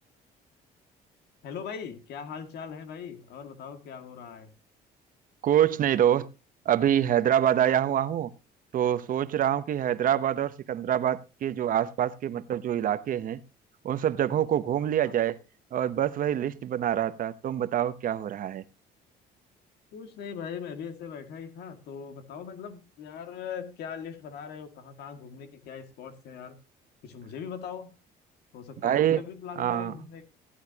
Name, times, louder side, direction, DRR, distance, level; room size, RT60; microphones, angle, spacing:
voice 1, 1.4-4.5 15.0-15.1 19.9-26.5 27.0-27.9 28.5-30.3, left 7 dB, 75° left, 2.1 m, -40 dB
voice 2, 5.4-6.3 6.7-8.3 8.7-13.4 13.8-15.4 15.7-18.6 28.8-29.2 29.6-29.9, right 10 dB, 55° right, 0.9 m, -25 dB
15.5 x 12.0 x 2.9 m
cardioid pair, 110°, 17 cm